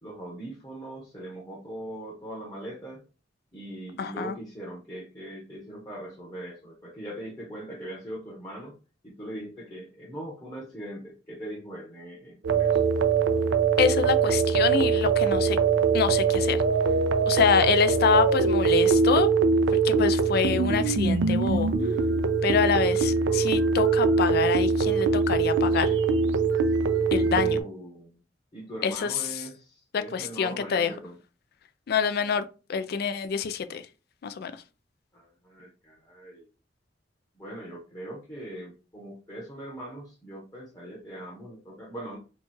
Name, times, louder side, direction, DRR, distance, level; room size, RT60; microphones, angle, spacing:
voice 1, 0.0-3.0 3.5-8.8 9.0-12.8 27.2-28.2 28.5-31.2 35.1-36.5 37.4-42.2, right 1 dB, 20° left, 0.9 m, -41 dB
voice 2, 4.0-4.3 13.8-15.6 15.9-16.6 17.3-19.3 19.8-21.7 22.4-25.9 27.1-27.6 28.8-29.2 29.9-30.9 31.9-33.8 34.2-34.5, left 6 dB, 55° left, 0.4 m, -26 dB
sound 1, 12.4-27.6, right 5 dB, 80° right, 0.4 m, -23 dB
3.0 x 2.3 x 4.3 m
head